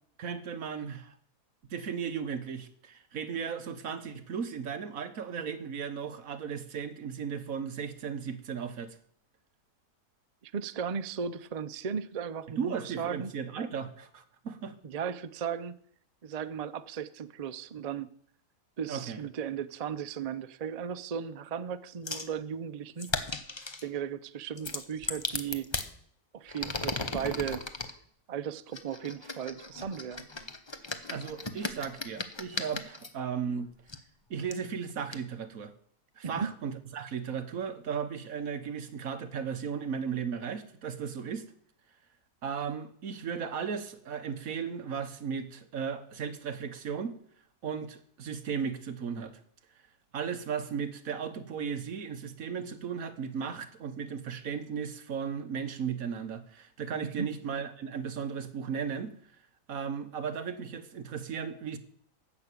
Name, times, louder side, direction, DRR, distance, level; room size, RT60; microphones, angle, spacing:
voice 1, 0.2-1.1 1.7-9.0 12.6-14.7 18.9-19.2 31.1-33.7 34.3-35.7 36.2-41.4 42.4-47.2 47.6-49.4 50.1-59.1 59.7-61.8, right 6 dB, 65° right, 8 dB, 1.5 m, -36 dB
voice 2, 10.4-13.3 14.8-15.8 16.2-18.1 18.8-23.2 23.8-25.7 26.3-27.7 28.3-30.3 36.2-36.5 57.2-57.3, right 7 dB, 80° right, 12 dB, 0.3 m, -36 dB
sound 1, 22.1-22.3 23.0-23.9 24.6-25.9 26.5-27.9 28.7-33.1 33.9-34.0 34.5-34.6 35.1-35.2, left 3 dB, 25° left, 0.7 m, -36 dB
15.0 x 6.1 x 8.3 m, 0.62 s
omnidirectional pair, 1.7 m